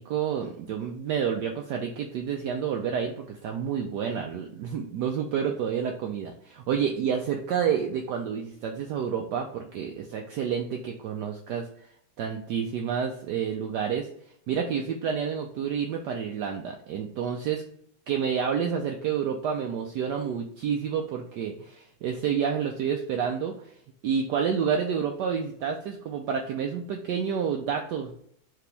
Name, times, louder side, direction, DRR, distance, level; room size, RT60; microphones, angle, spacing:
voice 1, 0.0-11.7 12.2-14.1 14.5-17.6 18.1-23.7 24.0-28.3, right 7 dB, 75° right, 3 dB, 1.0 m, -29 dB
4.9 x 2.9 x 3.3 m, 0.67 s
omnidirectional pair, 2.2 m